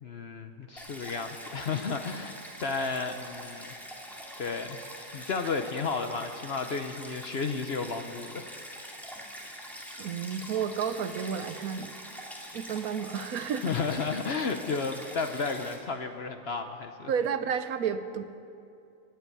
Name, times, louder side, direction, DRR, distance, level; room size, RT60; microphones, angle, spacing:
voice 1, 0.0-3.7 4.4-4.8 5.1-8.5 13.6-17.1, left 4 dB, 50° left, 7 dB, 0.8 m, -33 dB
Stream, 0.8-15.8, equal, ahead, 2.1 m, -44 dB
voice 2, 10.0-11.9 12.5-13.8 17.1-18.3, right 7 dB, 70° right, 11 dB, 1.2 m, -31 dB
18.5 x 8.2 x 9.3 m, 2.6 s
omnidirectional pair, 1.6 m